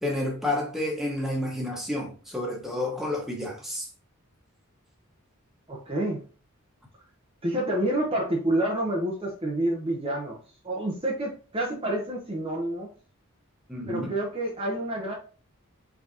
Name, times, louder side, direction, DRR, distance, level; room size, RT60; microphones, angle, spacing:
voice 1, 0.0-3.9 13.7-14.1, left 1 dB, ahead, 1.3 m, -30 dB
voice 2, 5.7-6.2 7.4-10.4 10.6-12.9 13.9-15.1, right 1 dB, 25° right, 0.9 m, -28 dB
4.7 x 4.0 x 2.8 m
head